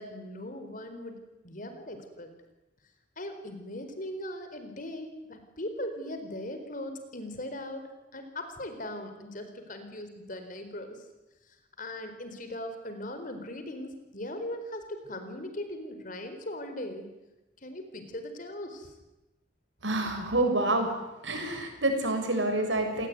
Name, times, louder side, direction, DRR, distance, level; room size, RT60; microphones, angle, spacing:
voice 1, 0.0-2.3 3.2-7.8 8.1-11.0 11.8-17.1 17.6-18.9, left 1 dB, 45° left, 8 dB, 4.5 m, -39 dB
voice 2, 19.8-20.9 21.2-23.1, right 2 dB, 90° right, 5 dB, 6.6 m, -27 dB
29.0 x 19.5 x 9.6 m, 1.0 s
head